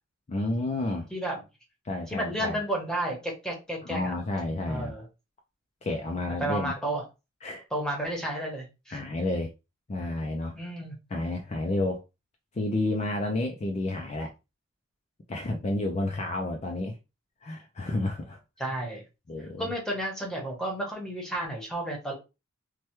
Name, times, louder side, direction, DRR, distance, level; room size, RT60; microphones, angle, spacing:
voice 1, 0.3-1.1 1.8-2.6 3.8-4.9 5.8-6.7 7.4-7.6 8.9-9.5 9.9-10.6 11.1-12.0 12.5-14.3 15.3-17.0 17.4-18.4 19.3-19.7, left 2 dB, 30° left, 0.4 m, -30 dB
voice 2, 1.1-1.4 2.1-4.1 4.7-5.0 6.4-7.0 7.7-9.0 10.5-11.0 18.6-19.0 19.4-22.1, right 1 dB, 5° left, 0.9 m, -32 dB
3.2 x 2.2 x 2.9 m
head